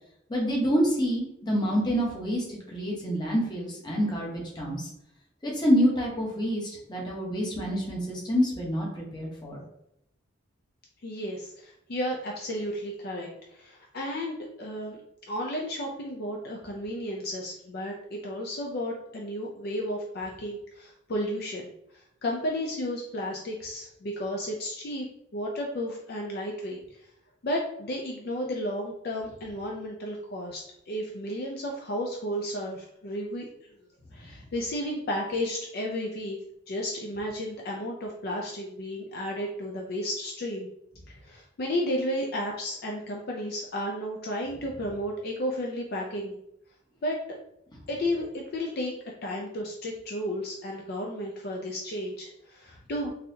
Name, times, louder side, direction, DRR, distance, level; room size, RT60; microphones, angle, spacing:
voice 1, 0.3-4.9 5.4-9.6, equal, 20° left, -3 dB, 0.9 m, -27 dB
voice 2, 11.0-15.0 15.3-25.1 25.3-27.1 27.4-33.7 34.1-36.4 36.7-40.7 41.1-46.4 47.0-47.4 47.9-48.9 49.2-53.1, equal, 50° left, -1 dB, 0.4 m, -33 dB
3.9 x 2.7 x 2.7 m, 0.79 s
head